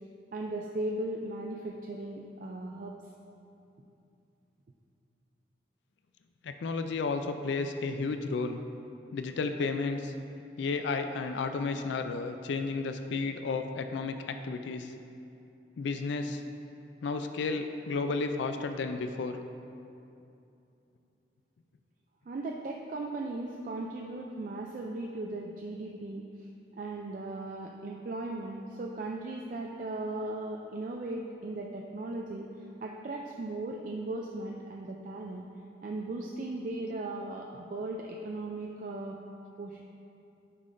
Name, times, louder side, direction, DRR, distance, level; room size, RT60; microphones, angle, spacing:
voice 1, 0.3-2.9 22.3-26.2 26.7-32.5 32.8-35.4 35.8-39.1 39.6-39.8, right 2 dB, 45° right, 0 dB, 0.3 m, -37 dB
voice 2, 6.4-8.6 9.1-10.1 10.6-14.9 15.8-16.4 17.0-19.4, left 4 dB, 80° left, 7 dB, 0.3 m, -32 dB
9.6 x 5.6 x 2.6 m, 2.7 s
head